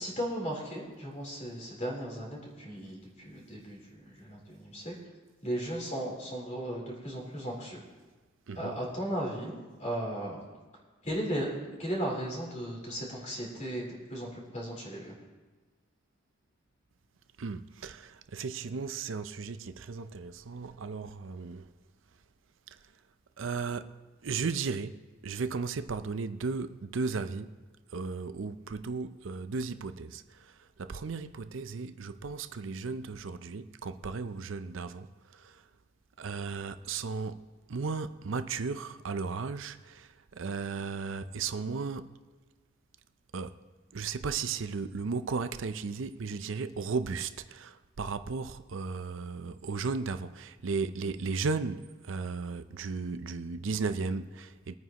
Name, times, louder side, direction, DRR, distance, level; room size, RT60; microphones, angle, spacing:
voice 1, 0.0-5.0 5.4-7.8 8.6-10.4 11.0-11.5 11.8-15.1, equal, 35° left, 3.7 m, -36 dB
voice 2, 8.5-8.8 17.4-21.7 23.4-23.9 24.2-27.6 27.9-30.5 30.8-35.1 35.3-35.6 36.2-42.1 43.3-43.5 43.9-54.7, right 4 dB, 70° right, 0.5 m, -35 dB
22.5 x 9.3 x 3.0 m
head